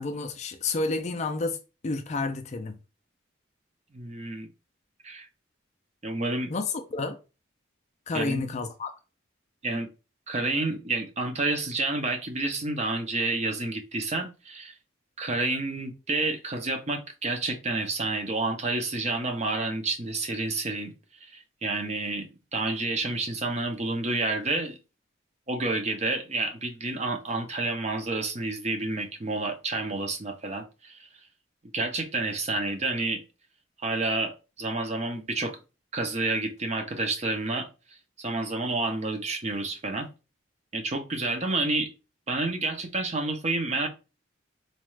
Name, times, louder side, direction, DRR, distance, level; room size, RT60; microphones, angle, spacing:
voice 1, 0.0-1.6 1.8-2.7 6.5-6.6 6.9-7.2 8.1-8.9, left 3 dB, 35° left, 0.4 m, -30 dB
voice 2, 3.9-4.5 5.0-5.3 6.0-6.5 8.1-8.5 9.6-9.9 10.3-14.7 15.2-20.9 21.2-24.8 25.5-31.1 31.7-33.2 33.8-35.6 35.9-37.7 38.2-40.1 40.7-41.9 42.3-43.9, right 2 dB, 35° right, 0.6 m, -29 dB
4.1 x 2.4 x 3.1 m
head